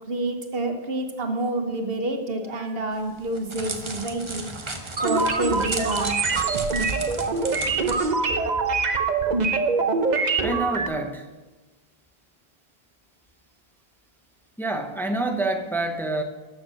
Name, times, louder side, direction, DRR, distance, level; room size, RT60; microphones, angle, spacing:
voice 1, 0.1-4.5 5.0-6.2, right 2 dB, 65° right, 5 dB, 1.5 m, -28 dB
voice 2, 2.5-2.9 10.4-11.3 14.6-16.2, right 2 dB, ahead, 5 dB, 0.8 m, -27 dB
Crackle, 2.9-7.9, right 2 dB, 30° right, 1.1 m, -35 dB
sound 1, 5.0-10.9, right 4 dB, 45° right, 0.9 m, -24 dB
13.0 x 7.2 x 6.4 m, 1.2 s
omnidirectional pair, 1.1 m